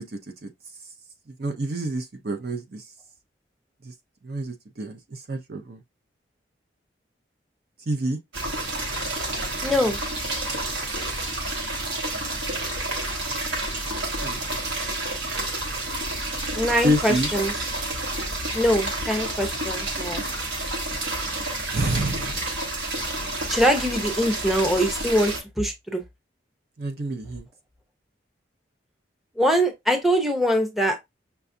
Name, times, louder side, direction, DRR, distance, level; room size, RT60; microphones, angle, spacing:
voice 1, 1.4-2.8 3.8-3.9 4.2-5.8 7.9-8.2 14.2-14.4 16.8-17.3 21.7-22.4 26.8-27.5, right 1 dB, 55° right, 0.6 m, -27 dB
sound 1, 8.3-25.4, right 2 dB, 70° right, 1.1 m, -29 dB
voice 2, 9.6-10.0 16.5-17.5 18.5-20.2 23.5-26.0 29.4-31.0, equal, ahead, 0.6 m, -23 dB
5.7 x 2.4 x 2.6 m
head